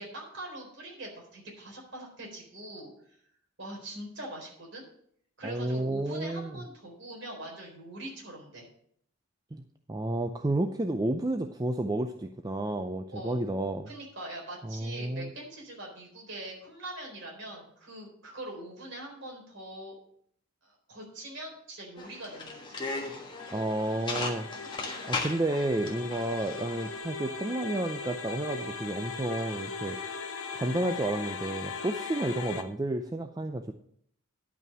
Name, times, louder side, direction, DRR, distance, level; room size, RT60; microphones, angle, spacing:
voice 1, 0.0-2.9 3.6-4.8 5.4-8.7 13.1-13.4 13.9-19.9 20.6-22.8, right 1 dB, 50° right, -1 dB, 4.0 m, -43 dB
voice 2, 5.4-6.6 9.5-13.9 14.6-15.3 23.5-24.5 25.1-30.0 30.5-33.7, right 1 dB, 15° right, 6 dB, 0.4 m, -31 dB
sound 1, 22.0-26.9, left 3 dB, 20° left, 1.4 m, -37 dB
sound 2, 23.4-32.6, left 4 dB, 70° left, 1.0 m, -39 dB
11.0 x 5.6 x 7.2 m, 0.66 s
head